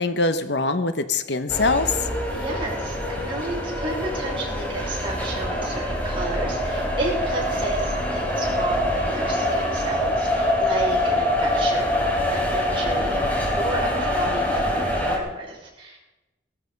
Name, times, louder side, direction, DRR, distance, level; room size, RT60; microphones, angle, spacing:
voice 1, 0.0-2.0, left 3 dB, 65° left, 10 dB, 1.0 m, -23 dB
sound 1, 1.5-15.2, left 1 dB, 10° left, 3.4 m, -24 dB
voice 2, 2.3-16.0, right 2 dB, 30° right, -4 dB, 6.2 m, -32 dB
18.0 x 14.0 x 5.3 m, 1.0 s
head